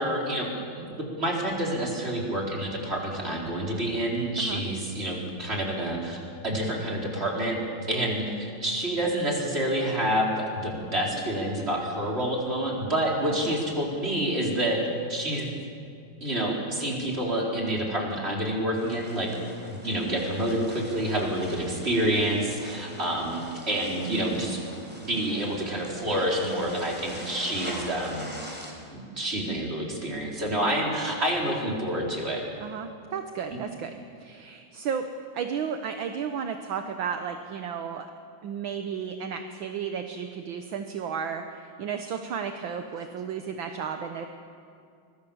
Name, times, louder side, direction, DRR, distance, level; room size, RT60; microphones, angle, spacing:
voice 1, 0.0-7.6 7.9-14.8 15.1-15.5 16.2-19.3 19.7-24.6 25.1-28.3 28.9-32.4, right 1 dB, 25° right, -2 dB, 4.5 m, -28 dB
sound 1, 18.7-28.7, equal, 5° right, 4.4 m, -43 dB
voice 2, 32.6-35.1 35.3-38.1 38.4-44.3, right 7 dB, 70° right, 6 dB, 1.7 m, -33 dB
24.5 x 23.0 x 7.1 m, 2.4 s
omnidirectional pair, 2.4 m